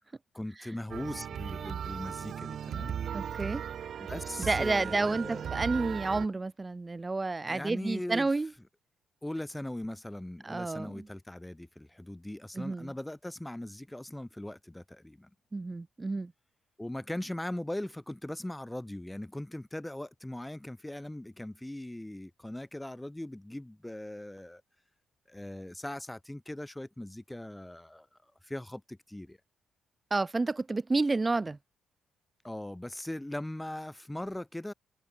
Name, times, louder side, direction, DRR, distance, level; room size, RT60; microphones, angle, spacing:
voice 1, 0.3-3.0 4.1-5.5 7.5-8.3 9.2-15.3 16.8-24.6 25.3-29.4 32.4-34.7, left 1 dB, 10° left, 1.2 m, -40 dB
sound 1, 0.9-6.3, right 8 dB, 60° right, 1.4 m, -37 dB
voice 2, 3.1-3.6 4.5-8.5 10.4-11.1 12.6-12.9 15.5-16.3 30.1-31.6, right 3 dB, 20° right, 0.3 m, -30 dB
cardioid pair, 90°, 0 cm